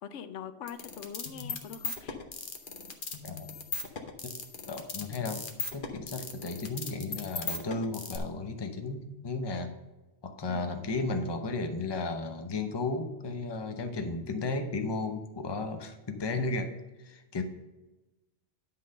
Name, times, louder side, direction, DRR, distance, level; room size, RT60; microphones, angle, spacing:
voice 1, 0.0-2.2 10.5-10.7, left 8 dB, 90° left, 11 dB, 1.0 m, -43 dB
sound 1, 0.7-8.2, left 4 dB, 50° left, 1.0 m, -37 dB
voice 2, 4.7-5.4 5.7-9.7 10.2-16.7 17.0-17.4, left 3 dB, 25° left, 7 dB, 0.7 m, -34 dB
10.5 x 3.8 x 6.4 m, 1.1 s
omnidirectional pair, 1.2 m